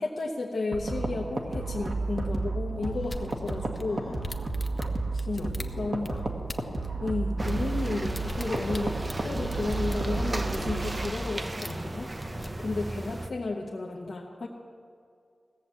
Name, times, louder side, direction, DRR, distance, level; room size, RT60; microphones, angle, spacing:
voice 1, 0.0-4.1 5.3-6.1 7.0-12.1 12.6-14.5, left 3 dB, 70° left, -1 dB, 1.0 m, -33 dB
sound 1, 0.7-11.1, right 3 dB, 65° right, 1.4 m, -32 dB
sound 2, 3.0-6.9 7.3-10.8 11.2-11.8 12.2-12.5, left 1 dB, 35° left, 0.8 m, -42 dB
voice 2, 3.8-4.2 5.1-6.6 12.2-12.7, left 3 dB, 90° left, 1 dB, 1.3 m, -45 dB
sound 3, 7.4-13.3, right 1 dB, 30° right, 0.7 m, -36 dB
16.5 x 7.0 x 7.5 m, 2.3 s
cardioid pair, 50°, 0 cm